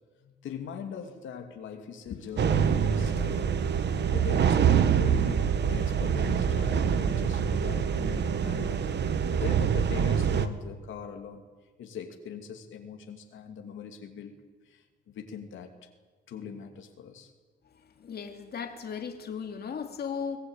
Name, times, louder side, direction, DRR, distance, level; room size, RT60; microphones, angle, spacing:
voice 1, 0.2-3.6 4.1-8.9 9.3-11.5 11.8-14.4 14.6-15.9 16.3-17.3, left 7 dB, 75° left, 4 dB, 2.7 m, -41 dB
sound 1, 2.4-10.5, right 7 dB, 60° right, 1.6 m, -25 dB
voice 2, 17.8-20.4, left 6 dB, 55° left, 4 dB, 2.6 m, -36 dB
23.5 x 17.0 x 9.1 m, 1.3 s
cardioid pair, 90°, 20 cm